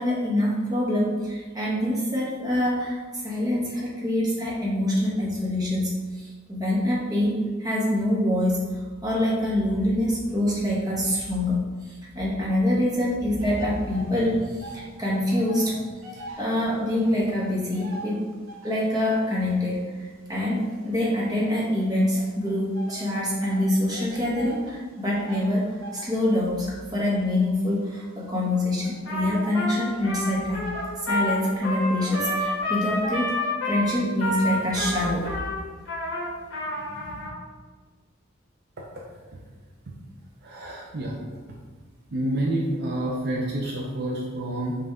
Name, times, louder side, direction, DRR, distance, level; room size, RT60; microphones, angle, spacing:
voice 1, 0.0-15.8 16.4-18.2 18.6-25.7 25.9-30.6 31.1-35.4 36.7-37.3, left 1 dB, 20° right, -6 dB, 1.1 m, -25 dB
sound 1, 13.4-15.0 15.2-18.9 19.5-21.5 22.2-33.2, right 1 dB, 80° right, 0.9 m, -43 dB
Trumpet, 29.0-37.3, left 1 dB, 60° left, 1.4 m, -29 dB
voice 2, 40.4-41.2 42.1-44.8, right 1 dB, 55° right, -3 dB, 0.6 m, -28 dB
5.4 x 2.6 x 3.6 m, 1.4 s
head